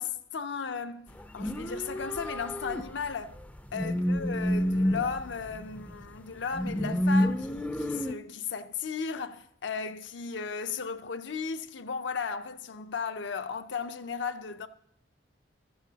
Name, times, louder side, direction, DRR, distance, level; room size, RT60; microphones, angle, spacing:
voice 1, 0.0-3.4 3.7-14.7, left 5 dB, 65° left, 0.6 m, -35 dB
sound 1, 1.2-3.1 3.3-6.0 6.5-8.2, left 1 dB, 10° left, 0.5 m, -29 dB
14.5 x 14.0 x 2.8 m
head